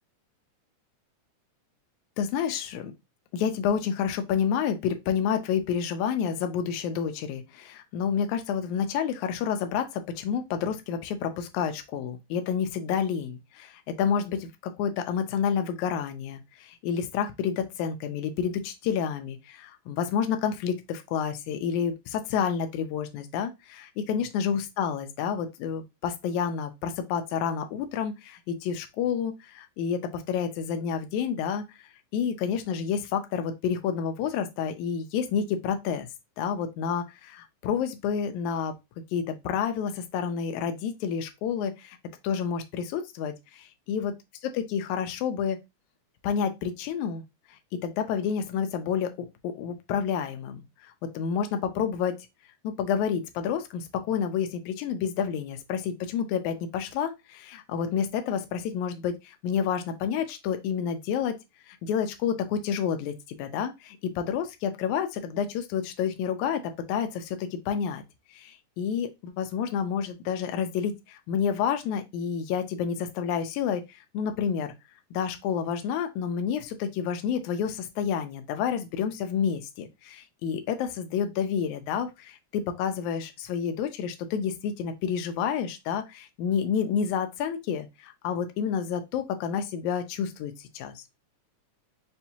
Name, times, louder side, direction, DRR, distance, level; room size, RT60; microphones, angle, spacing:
voice 1, 2.2-2.9 3.3-31.6 32.1-36.1 36.4-38.7 39.1-42.0 42.2-44.1 44.4-45.6 46.2-47.2 47.8-49.1 49.4-52.2 52.6-61.4 61.7-68.0 68.3-73.8 74.1-74.7 75.1-91.2, left 7 dB, 80° left, 1.9 m, -29 dB
5.5 x 2.6 x 2.8 m
omnidirectional pair, 3.6 m